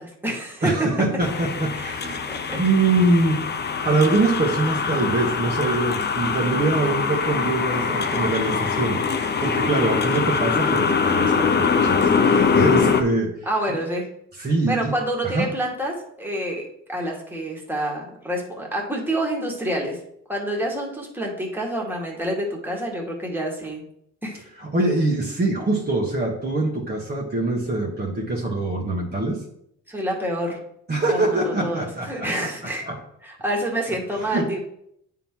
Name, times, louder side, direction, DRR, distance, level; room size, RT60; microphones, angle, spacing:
voice 1, 0.0-0.7 1.7-2.0 2.5-2.6 13.4-14.1 14.7-16.6 16.9-20.0 20.3-23.8 24.2-24.4 29.9-30.6 31.1-32.8 33.2-34.6, right 1 dB, 5° right, -1 dB, 1.8 m, -27 dB
voice 2, 0.6-3.4 3.8-13.3 14.4-14.9 15.2-15.5 24.6-29.4 30.9-32.3 32.8-33.0 34.2-34.5, right 2 dB, 30° right, -2 dB, 1.4 m, -23 dB
sound 1, 1.2-13.0, left 5 dB, 35° left, 0.7 m, -23 dB
8.9 x 3.8 x 4.5 m, 0.74 s
cardioid pair, 90°, 30 cm